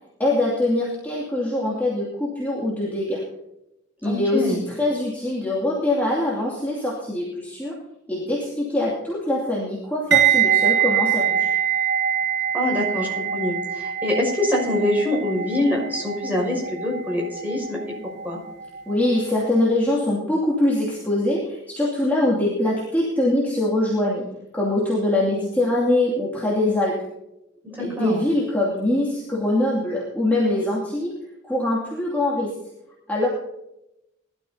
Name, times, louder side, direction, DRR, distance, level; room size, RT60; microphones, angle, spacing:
voice 1, 0.2-3.2 4.0-7.7 8.1-11.5 18.9-24.2 24.5-27.0 27.8-31.1 31.5-32.5 33.1-33.3, left 1 dB, 10° left, -6 dB, 2.6 m, -23 dB
voice 2, 4.0-4.6 12.5-17.8 18.2-18.4 27.6-28.2, left 1 dB, 10° right, -3 dB, 6.1 m, -24 dB
sound 1, 10.1-19.1 19.3-19.6, right 9 dB, 55° right, 1.1 m, -24 dB
21.0 x 12.5 x 2.8 m, 0.87 s
head